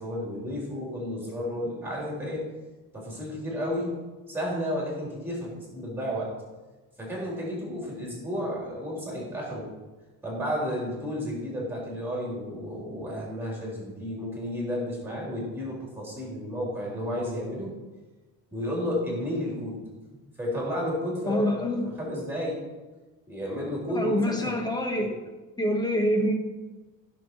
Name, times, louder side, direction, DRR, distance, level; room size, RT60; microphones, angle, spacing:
voice 1, 0.0-2.4 2.9-3.9 4.3-6.3 7.0-9.7 10.2-17.7 18.5-19.8 20.4-21.7 22.0-22.6 23.3-24.6, equal, 5° right, -3 dB, 3.7 m, -32 dB
voice 2, 21.3-21.9 23.9-25.2 25.6-26.3, equal, 10° left, 4 dB, 1.3 m, -26 dB
15.0 x 6.7 x 4.7 m, 1.2 s
cardioid pair, 170°, 39 cm